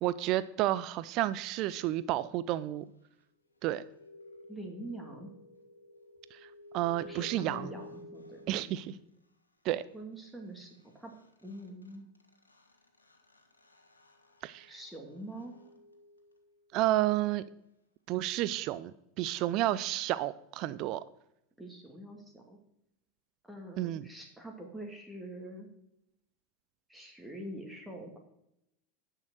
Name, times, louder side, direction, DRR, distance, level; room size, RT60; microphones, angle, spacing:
voice 1, 0.0-2.9 3.6-3.8 6.3-6.4 6.7-7.7 8.5-9.0 9.6-9.8 14.4-14.7 16.7-17.4 18.1-21.0 23.8-24.1, right 14 dB, 45° right, 16 dB, 0.4 m, -31 dB
sound 1, 3.6-9.0 10.8-10.9 11.1-16.6, left 1 dB, 80° left, 1.5 m, -53 dB
voice 2, 4.5-5.3 7.0-8.8 9.9-11.1 11.4-12.1 14.7-15.7 21.6-22.6 23.4-25.7 26.9-28.2, right 1 dB, 5° right, 1 dB, 2.3 m, -45 dB
10.5 x 6.5 x 6.3 m, 0.80 s
figure-of-eight pair, 80°, 0 cm